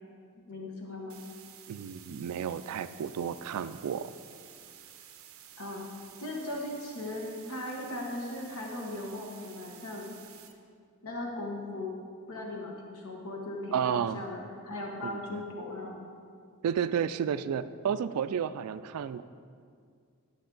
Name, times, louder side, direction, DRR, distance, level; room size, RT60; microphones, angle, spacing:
voice 1, 0.5-1.2 5.6-5.8 6.2-10.2 11.0-12.0 12.3-16.1, left 1 dB, 75° left, -1 dB, 1.2 m, -38 dB
sound 1, 1.1-10.5, right 9 dB, 65° right, 0.7 m, -52 dB
voice 2, 1.7-4.1 13.7-14.2 15.0-15.4 16.6-19.2, right 8 dB, 85° right, 12 dB, 0.3 m, -32 dB
11.5 x 6.6 x 3.9 m, 2.2 s
head